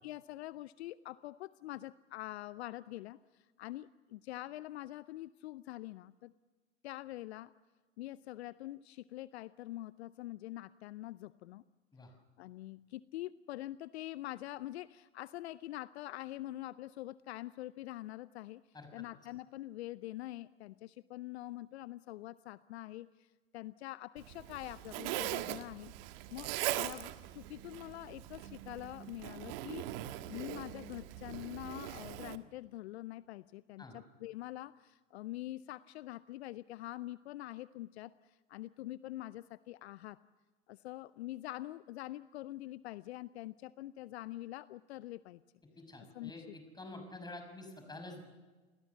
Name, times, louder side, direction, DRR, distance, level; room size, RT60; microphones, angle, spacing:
voice 1, 0.0-6.3 6.8-7.5 8.0-11.6 12.4-18.6 18.9-23.3 23.5-25.9 26.3-40.2 40.7-45.4 46.1-46.3, left 16 dB, 60° left, 17 dB, 0.7 m, -45 dB
voice 2, 18.7-19.0 33.8-34.0 45.8-48.2, left 2 dB, 10° left, 5 dB, 6.0 m, -48 dB
Zipper (clothing), 24.2-32.4, right 14 dB, 50° right, 1.6 m, -41 dB
29.0 x 20.5 x 7.1 m, 1.3 s
hypercardioid pair, 100°, 36 cm